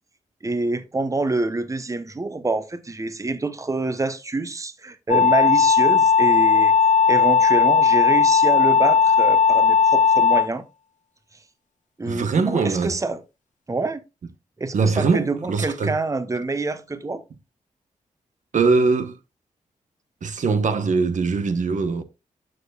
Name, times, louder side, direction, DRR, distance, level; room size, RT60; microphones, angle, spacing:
voice 1, 0.4-6.7 7.1-10.6 12.0-13.2 13.7-14.0 14.6-17.2, right 3 dB, 25° right, 0.9 m, -26 dB
sound 1, 5.1-10.5, left 6 dB, 65° left, 0.9 m, -16 dB
voice 2, 12.1-12.9 14.7-16.0 18.5-19.2 20.2-22.0, right 4 dB, 65° right, 0.9 m, -21 dB
13.5 x 4.8 x 2.3 m
cardioid pair, 55°, 14 cm